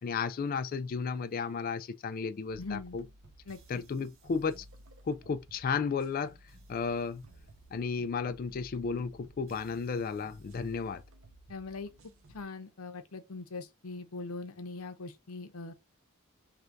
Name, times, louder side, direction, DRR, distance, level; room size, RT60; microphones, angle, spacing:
voice 1, 0.0-3.0 3.7-4.7 5.0-6.4 6.7-7.2 7.7-11.0, left 5 dB, 40° left, 0.3 m, -33 dB
sound 1, 2.5-12.4, right 1 dB, 60° right, 0.8 m, -56 dB
voice 2, 2.6-3.0 3.5-3.8 11.5-11.9 12.3-15.7, left 3 dB, 75° left, 0.7 m, -41 dB
3.3 x 2.5 x 4.5 m
head